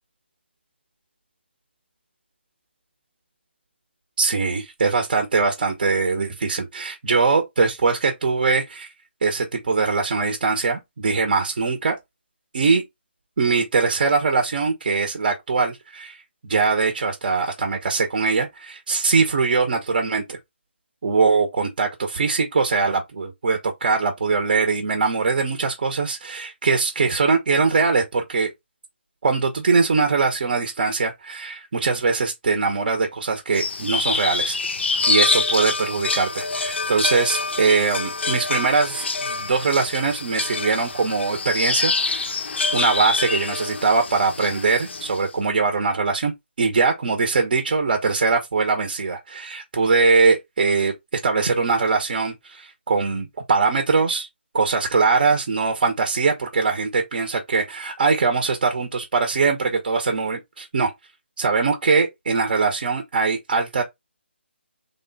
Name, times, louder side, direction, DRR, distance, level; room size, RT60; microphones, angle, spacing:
voice 1, 4.2-8.9 9.2-12.0 12.5-12.8 13.4-20.4 21.0-28.5 29.2-34.6 35.1-42.3 42.7-46.3 46.6-50.9 51.2-54.3 54.5-60.9 61.4-63.8, right 4 dB, 50° right, 1.0 m, -21 dB
sound 1, 33.5-45.2, left 4 dB, 75° left, 0.7 m, -26 dB
3.6 x 2.3 x 4.0 m
figure-of-eight pair, 160°, 6 cm